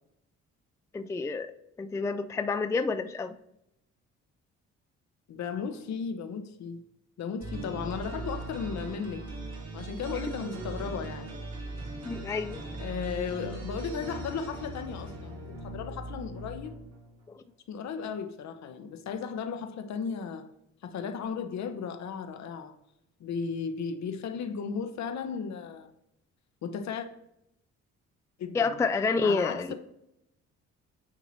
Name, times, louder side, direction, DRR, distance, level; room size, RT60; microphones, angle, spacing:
voice 1, 0.9-1.5 1.8-3.4 12.1-12.6 17.3-17.4 28.5-29.7, left 4 dB, 10° left, 10 dB, 0.3 m, -29 dB
voice 2, 5.3-6.8 7.2-9.2 9.7-11.4 12.8-16.7 17.7-20.5 20.8-22.8 23.2-25.9 26.6-27.1 28.4-28.8 29.2-29.7, left 6 dB, 65° left, 8 dB, 0.9 m, -35 dB
sound 1, 7.4-17.2, right 2 dB, 55° right, 2.0 m, -39 dB
8.8 x 3.0 x 4.1 m, 0.81 s
cardioid pair, 90°, 30 cm